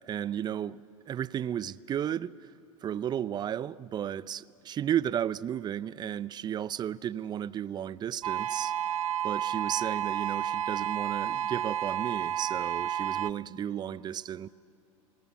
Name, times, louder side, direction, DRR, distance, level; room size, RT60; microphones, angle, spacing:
voice 1, 0.1-2.5 2.8-8.7 9.2-14.5, right 10 dB, 25° right, 0.4 m, -33 dB
sound 1, 8.2-13.3, right 10 dB, 80° right, 0.5 m, -31 dB
25.0 x 18.0 x 8.3 m
hypercardioid pair, 100°, 17 cm